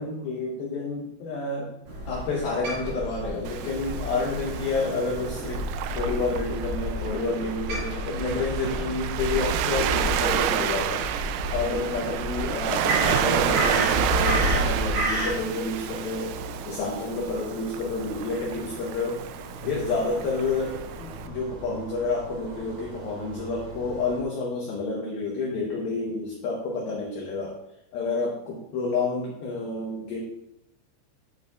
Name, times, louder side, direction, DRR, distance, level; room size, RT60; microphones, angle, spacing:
voice 1, 0.0-1.7 2.1-5.7 5.9-11.1 11.5-16.4 16.7-19.2 19.6-27.6 27.9-30.2, left 3 dB, 75° left, -2 dB, 2.3 m, -29 dB
Crow, 1.9-15.3, equal, 50° right, 2.4 m, -31 dB
Waves surf, 3.5-21.3, right 10 dB, 85° right, 2.8 m, -30 dB
sound 1, 9.7-24.2, equal, 70° right, 3.8 m, -43 dB
9.2 x 8.9 x 2.4 m, 0.83 s
omnidirectional pair, 5.7 m